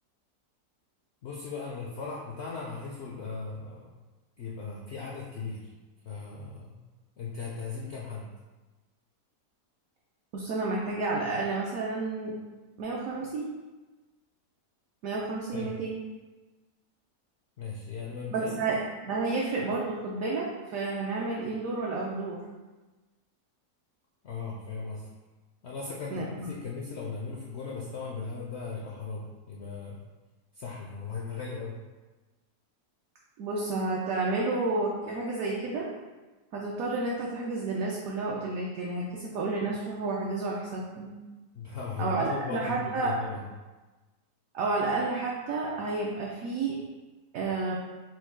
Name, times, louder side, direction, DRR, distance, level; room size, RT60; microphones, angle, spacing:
voice 1, 1.2-3.9 4.4-5.6 6.0-6.8 7.2-8.3 15.5-15.8 17.6-18.6 24.2-25.0 25.6-30.0 30.5-31.7 41.5-43.5, left 4 dB, 70° left, -4 dB, 0.6 m, -37 dB
voice 2, 10.3-12.3 12.8-13.5 15.0-16.0 18.3-22.4 26.1-26.5 33.4-35.9 36.5-41.1 42.0-43.1 44.5-46.8 47.3-47.7, right 3 dB, 70° right, -3 dB, 0.9 m, -31 dB
4.4 x 2.3 x 4.4 m, 1.2 s
omnidirectional pair, 1.7 m